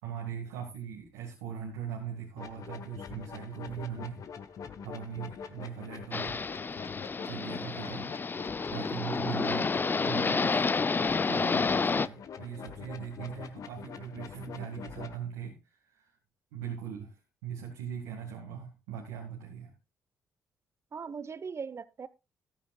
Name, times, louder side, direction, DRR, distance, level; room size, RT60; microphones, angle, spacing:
voice 1, 0.0-4.3 4.8-6.5 7.2-8.1 8.7-10.7 11.2-16.1 16.5-19.7, right 8 dB, 80° right, 2.1 m, -40 dB
sound 1, 2.4-15.2, left 7 dB, 55° left, 1.2 m, -44 dB
voice 2, 3.8-4.1 20.9-22.1, right 5 dB, 40° right, 1.0 m, -40 dB
sound 2, 6.1-12.1, left 4 dB, 30° left, 0.6 m, -29 dB
14.0 x 12.5 x 2.4 m
hypercardioid pair, 40°, 7 cm